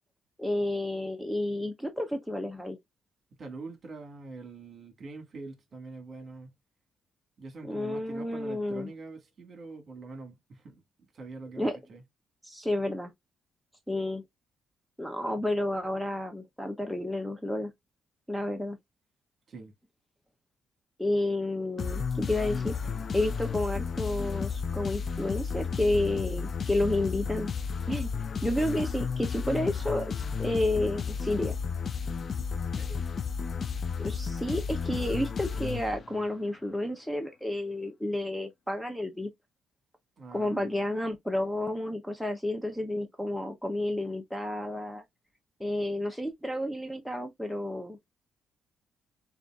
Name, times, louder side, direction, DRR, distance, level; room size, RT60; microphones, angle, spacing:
voice 1, 0.4-2.8 7.6-8.9 11.6-11.8 12.4-13.1 13.9-14.2 15.0-17.7 18.3-18.8 21.0-27.5 27.9-28.1 28.4-31.5 34.0-39.3 40.3-45.0 45.6-48.0, left 1 dB, 5° left, 0.8 m, -31 dB
voice 2, 3.4-6.5 7.4-10.8 11.1-12.0 19.5-19.7 32.4-32.5 32.7-33.1 40.2-40.7, right 3 dB, 45° right, 1.7 m, -44 dB
sound 1, 21.8-36.4, left 6 dB, 45° left, 0.3 m, -33 dB
6.6 x 2.6 x 2.4 m
cardioid pair, 90°, 0 cm